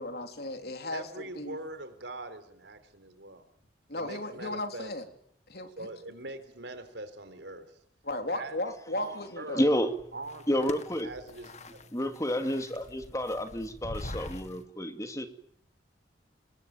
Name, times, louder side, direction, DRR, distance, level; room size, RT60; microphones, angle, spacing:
voice 1, 0.0-1.1 1.4-1.6 3.9-5.0 5.5-5.9 8.0-9.6, left 2 dB, 60° left, 6 dB, 3.7 m, -35 dB
voice 2, 0.9-3.4 3.9-4.9 5.8-7.8 8.3-8.6 8.9-9.6 10.1-10.7 11.0-11.9, right 2 dB, 80° right, 10 dB, 4.1 m, -42 dB
voice 3, 9.5-9.9 10.5-11.1 11.9-15.3, equal, 20° left, 7 dB, 2.4 m, -30 dB
sound 1, 9.7-14.6, left 1 dB, 40° left, 1.9 m, -44 dB
27.0 x 21.5 x 9.1 m, 0.68 s
head